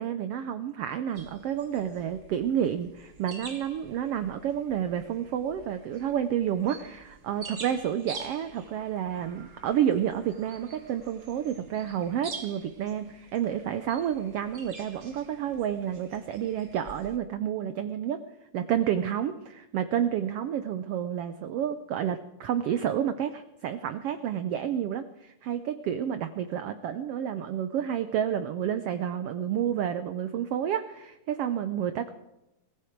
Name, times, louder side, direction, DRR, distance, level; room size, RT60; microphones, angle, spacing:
voice 1, 0.0-18.2 18.5-32.1, right 9 dB, 80° right, 10 dB, 1.3 m, -30 dB
sound 1, 1.1-17.2, right 4 dB, 40° right, 1.2 m, -47 dB
21.0 x 15.0 x 4.6 m, 0.91 s
omnidirectional pair, 3.6 m